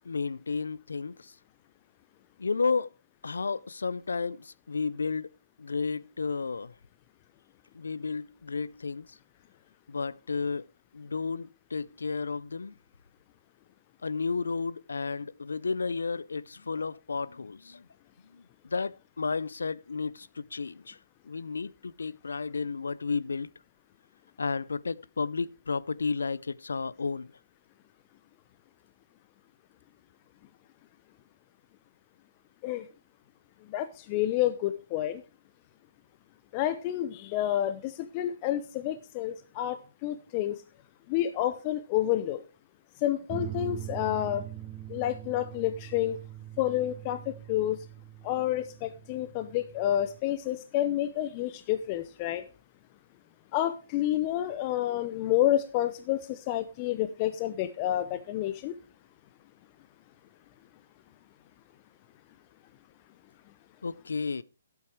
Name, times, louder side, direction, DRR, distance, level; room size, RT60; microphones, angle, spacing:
voice 1, 0.1-1.3 2.4-2.9 3.2-5.3 5.6-6.7 7.7-9.1 9.9-10.7 10.9-12.7 14.0-17.8 18.3-18.4 18.7-21.0 21.3-23.5 24.4-27.3 63.8-64.4, left 4 dB, 80° left, 0.5 m, -32 dB
voice 2, 33.7-35.2 36.5-40.6 41.1-42.4 43.0-44.5 44.9-46.2 46.6-47.8 48.2-52.4 53.5-58.7, left 13 dB, 30° left, 0.7 m, -29 dB
sound 1, 43.3-50.2, right 14 dB, 20° right, 1.0 m, -42 dB
12.0 x 8.2 x 4.5 m
hypercardioid pair, 145°, 0 cm